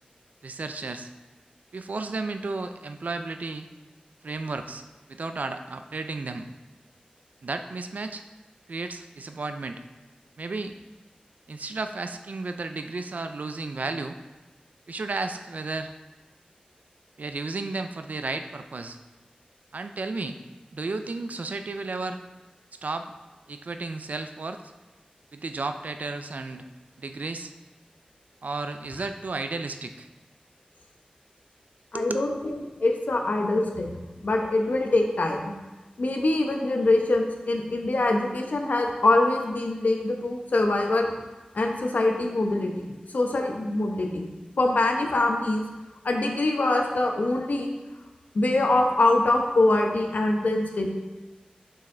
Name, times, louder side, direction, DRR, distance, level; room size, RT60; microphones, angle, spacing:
voice 1, 0.4-1.1 1.7-3.7 4.2-6.5 7.4-8.2 8.7-9.8 10.4-10.8 11.5-14.2 14.9-15.9 17.2-19.0 19.7-20.4 20.7-22.2 22.7-23.1 23.5-24.6 25.3-26.6 27.0-27.5 28.4-30.1 31.9-32.2, right 3 dB, 75° right, 8 dB, 0.5 m, -33 dB
voice 2, 31.9-33.9 34.2-35.4 36.0-41.1 41.5-42.9 43.1-44.3 44.6-45.6 46.0-47.7 48.3-50.9, left 2 dB, 80° left, 2 dB, 1.0 m, -24 dB
7.2 x 5.6 x 3.9 m, 1.2 s
wide cardioid pair, 80°, 3 cm